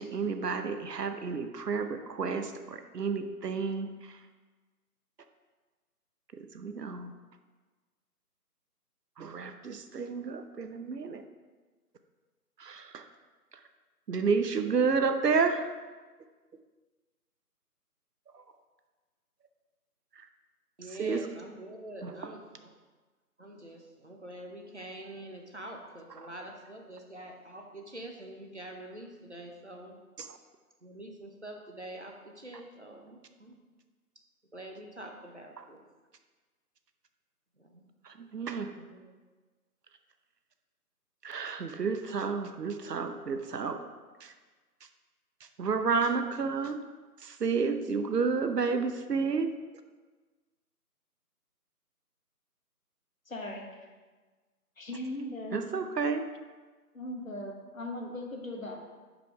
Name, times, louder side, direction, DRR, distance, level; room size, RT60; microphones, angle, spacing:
voice 1, 0.0-3.9 6.3-7.1 9.2-11.2 12.6-13.0 14.1-15.6 21.0-21.3 22.0-22.3 26.2-26.3 30.2-30.3 38.2-38.7 41.2-43.8 44.2-44.3 45.6-46.8 47.2-49.5 55.5-56.2, right 5 dB, 80° right, 8 dB, 0.7 m, -30 dB
voice 2, 20.8-22.7 23.4-29.9 30.8-33.6 34.5-35.8 37.7-37.8 38.7-39.1, right 1 dB, 45° right, 2 dB, 0.7 m, -45 dB
voice 3, 53.3-53.6 54.8-55.6 56.9-58.8, left 1 dB, 55° left, 0 dB, 1.2 m, -38 dB
5.5 x 5.0 x 4.6 m, 1.3 s
figure-of-eight pair, 180°, 48 cm